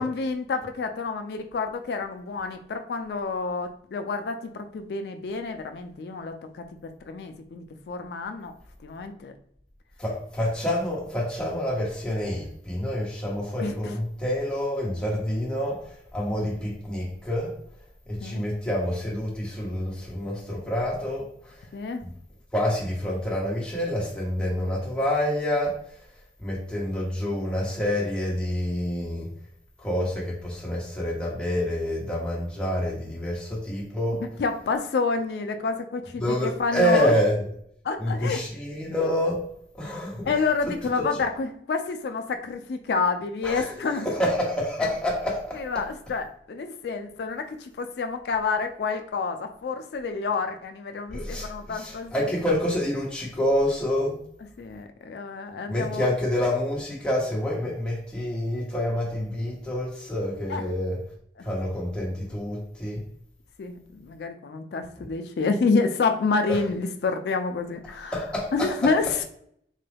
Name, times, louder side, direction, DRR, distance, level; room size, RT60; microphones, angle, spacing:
voice 1, 0.0-8.5 8.8-9.3 13.6-13.9 18.2-18.4 21.7-22.0 34.4-37.1 37.8-38.4 40.2-44.1 44.8-44.9 45.5-52.1 54.6-56.1 60.5-60.6 61.4-61.5 63.6-68.2 68.5-69.2, left 4 dB, 65° left, 7 dB, 0.3 m, -28 dB
voice 2, 10.0-17.5 18.1-21.6 22.0-22.1 22.5-25.7 26.4-29.3 29.8-34.2 36.2-37.4 38.0-39.4 39.7-40.3 41.0-41.1 43.4-45.6 51.1-54.1 55.7-61.0 61.4-63.0 65.0-65.1 66.5-66.6 68.1-68.7, equal, 5° left, -5 dB, 1.0 m, -27 dB
3.9 x 2.2 x 3.2 m, 0.68 s
head